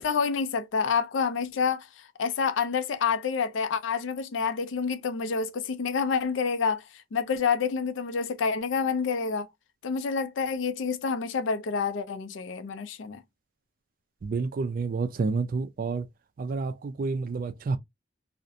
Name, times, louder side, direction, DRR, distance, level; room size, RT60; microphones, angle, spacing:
voice 1, 0.0-9.5 9.8-13.2, left 5 dB, 80° left, 0.4 m, -28 dB
voice 2, 14.2-16.0 16.4-17.8, right 4 dB, 45° right, 0.3 m, -29 dB
2.5 x 2.0 x 2.6 m
head